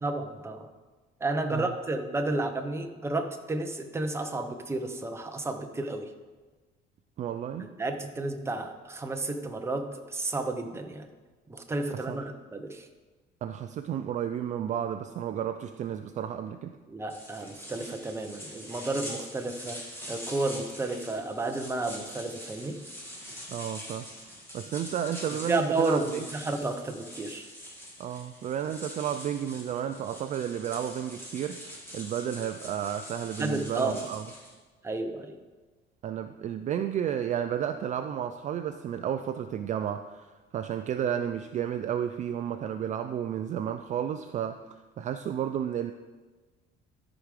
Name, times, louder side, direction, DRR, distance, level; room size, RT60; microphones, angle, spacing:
voice 1, 0.0-0.7 1.2-6.1 7.6-11.1 11.5-12.9 16.9-19.8 20.1-22.8 25.5-27.5 33.4-34.0 34.8-35.4, right 2 dB, 15° right, 5 dB, 0.8 m, -32 dB
voice 2, 7.2-7.7 12.1-12.2 13.4-16.8 23.5-26.3 28.0-34.2 36.0-45.9, right 9 dB, 40° right, 8 dB, 0.4 m, -32 dB
sound 1, 17.1-34.5, equal, 10° left, 2.3 m, -44 dB
13.0 x 5.0 x 4.9 m, 1.3 s
cardioid pair, 140°, 19 cm